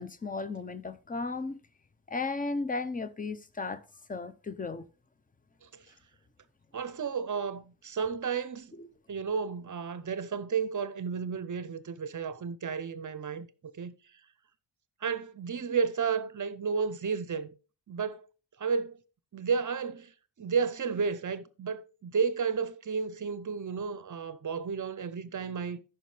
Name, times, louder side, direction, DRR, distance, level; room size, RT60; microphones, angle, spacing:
voice 1, 0.0-1.6 2.1-3.8 4.1-4.8 8.8-8.9, left 3 dB, 20° left, 0.6 m, -35 dB
voice 2, 6.7-8.7 9.1-13.5 13.8-13.9 15.0-17.5 17.9-18.3 18.6-19.0 19.3-20.1 20.4-25.8, right 6 dB, 45° right, 0.6 m, -32 dB
14.0 x 5.9 x 3.3 m
wide cardioid pair, 160°, 45 cm